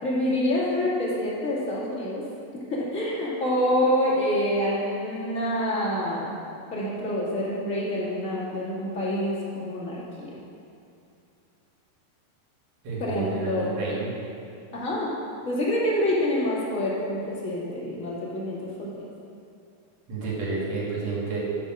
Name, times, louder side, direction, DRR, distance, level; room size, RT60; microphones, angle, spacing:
voice 1, 0.0-2.2 2.7-6.3 6.7-10.3 13.0-13.9 14.7-15.1 15.4-19.0, left 1 dB, 25° left, -7 dB, 2.0 m, -27 dB
voice 2, 12.8-14.1 20.1-21.4, right 3 dB, 50° right, -5 dB, 3.0 m, -30 dB
11.5 x 5.6 x 6.3 m, 2.6 s
omnidirectional pair, 4.3 m